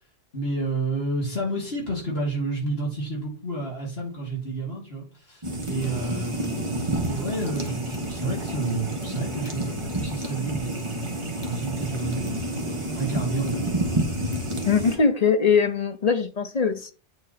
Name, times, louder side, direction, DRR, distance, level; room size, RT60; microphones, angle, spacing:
voice 1, 0.3-12.5 13.0-13.7, right 2 dB, 60° left, 3.2 m, -30 dB
sound 1, 5.4-15.0, right 1 dB, 25° right, 1.3 m, -29 dB
voice 2, 14.6-16.9, left 5 dB, 45° left, 0.7 m, -21 dB
8.8 x 3.7 x 4.2 m
omnidirectional pair, 1.1 m